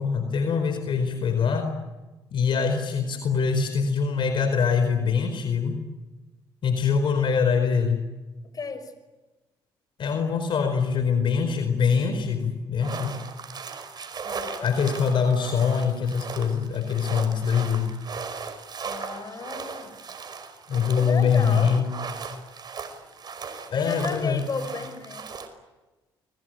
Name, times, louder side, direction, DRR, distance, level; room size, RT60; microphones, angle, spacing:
voice 1, 0.0-1.7 2.3-5.8 6.6-8.0 10.0-13.2 14.6-17.9 20.7-21.9 23.7-24.4, left 6 dB, 60° left, 7 dB, 4.6 m, -23 dB
voice 2, 8.5-8.9 14.2-14.7 18.8-19.9 21.0-21.8 23.5-25.3, left 4 dB, 45° left, 10 dB, 5.8 m, -34 dB
sound 1, 12.8-25.5, right 5 dB, 50° right, 5.2 m, -38 dB
29.5 x 22.0 x 9.2 m, 1.2 s
supercardioid pair, 70°, 9 cm